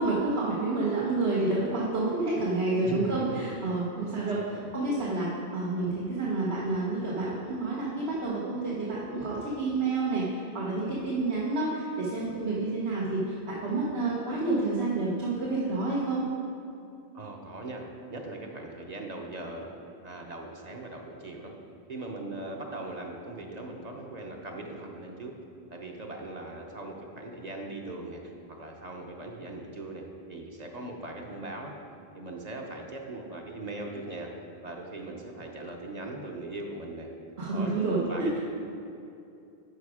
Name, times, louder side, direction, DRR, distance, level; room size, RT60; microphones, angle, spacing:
voice 1, 0.0-16.2 37.4-38.4, right 2 dB, 75° right, -6 dB, 1.4 m, -29 dB
voice 2, 2.8-3.4 4.2-4.7 17.1-19.7 20.0-21.5 21.9-25.3 25.7-28.3 28.6-31.7 32.1-34.3 34.6-37.1 37.5-38.4, right 2 dB, 40° right, 1 dB, 1.0 m, -40 dB
11.5 x 5.0 x 4.9 m, 2.6 s
omnidirectional pair, 1.1 m